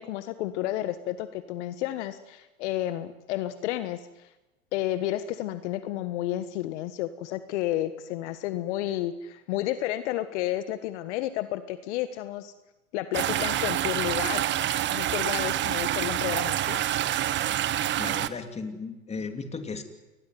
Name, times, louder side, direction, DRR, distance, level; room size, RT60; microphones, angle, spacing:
voice 1, 0.0-4.3 4.7-12.5 12.9-14.5 14.9-16.8, left 13 dB, 55° left, 12 dB, 1.5 m, -31 dB
sound 1, 13.1-18.3, right 12 dB, 25° right, 1.3 m, -27 dB
voice 2, 18.0-19.8, left 4 dB, 15° left, 7 dB, 3.2 m, -35 dB
28.0 x 20.5 x 9.5 m, 1.1 s
hypercardioid pair, 120°, 42 cm